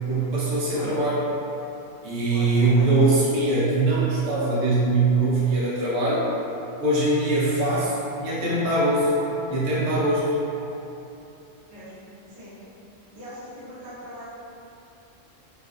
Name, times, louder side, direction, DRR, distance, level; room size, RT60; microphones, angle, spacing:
voice 1, 0.1-1.2 2.0-6.3 6.8-9.1 9.5-10.3, right 2 dB, 80° right, -8 dB, 0.9 m, -22 dB
voice 2, 2.3-3.2 11.7-12.0 12.3-12.6 13.0-14.3, equal, 40° right, -12 dB, 0.8 m, -41 dB
2.4 x 2.3 x 2.3 m, 2.9 s
omnidirectional pair, 1.3 m